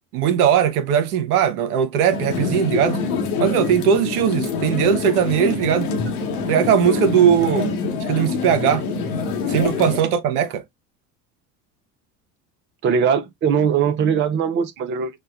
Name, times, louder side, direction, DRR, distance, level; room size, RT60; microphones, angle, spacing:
voice 1, 0.1-3.0 3.4-5.9 6.5-7.7 8.1-8.8 9.5-10.6, right 8 dB, 65° right, 0.7 m, -19 dB
sound 1, 2.1-10.0, left 5 dB, 60° left, 0.9 m, -25 dB
voice 2, 12.8-15.2, right 7 dB, 25° right, 0.6 m, -20 dB
6.4 x 2.2 x 2.3 m
figure-of-eight pair, 60°, 48 cm